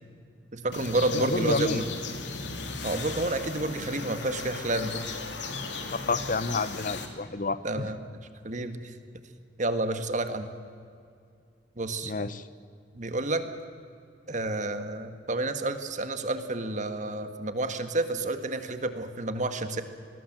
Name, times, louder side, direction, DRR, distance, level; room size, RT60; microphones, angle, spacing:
voice 1, 0.5-1.8 2.8-5.1 7.6-8.1 8.4-8.9 9.6-10.5 11.8-12.1 13.0-13.4 14.3-19.8, right 2 dB, 45° right, 9 dB, 1.7 m, -30 dB
sound 1, 0.7-7.1, left 4 dB, 85° left, 2.8 m, -36 dB
voice 2, 1.1-1.9 6.1-7.8 12.0-12.4, left 3 dB, 50° left, 15 dB, 0.9 m, -29 dB
27.0 x 20.5 x 7.6 m, 2.4 s
head